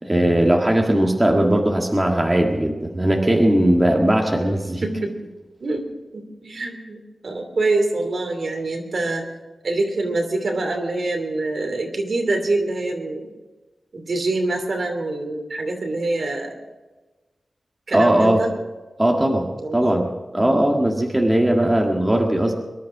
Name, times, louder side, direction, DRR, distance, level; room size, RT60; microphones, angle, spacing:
voice 1, 0.0-4.9 17.9-18.4 19.0-22.5, right 1 dB, 15° right, 1 dB, 1.7 m, -19 dB
voice 2, 4.8-5.1 5.6-5.9 6.1-9.2 9.6-13.3 13.9-16.5 17.9-18.5 19.6-20.0 20.4-20.6, right 2 dB, 60° right, 4 dB, 2.9 m, -25 dB
23.0 x 11.5 x 4.9 m, 1.2 s
wide cardioid pair, 100°, 0 cm